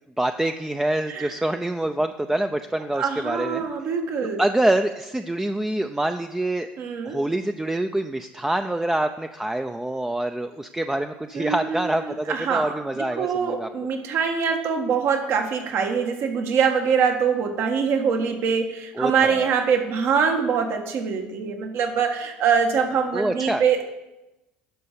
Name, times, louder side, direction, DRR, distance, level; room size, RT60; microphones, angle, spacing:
voice 1, 0.2-3.6 4.4-6.7 7.1-13.7 19.0-19.5 23.1-23.6, right 1 dB, 10° right, 7 dB, 0.6 m, -26 dB
voice 2, 2.9-4.4 6.8-7.2 11.3-23.8, right 6 dB, 60° right, 4 dB, 1.7 m, -24 dB
11.5 x 5.4 x 6.8 m, 1.0 s
hypercardioid pair, 70°, 5 cm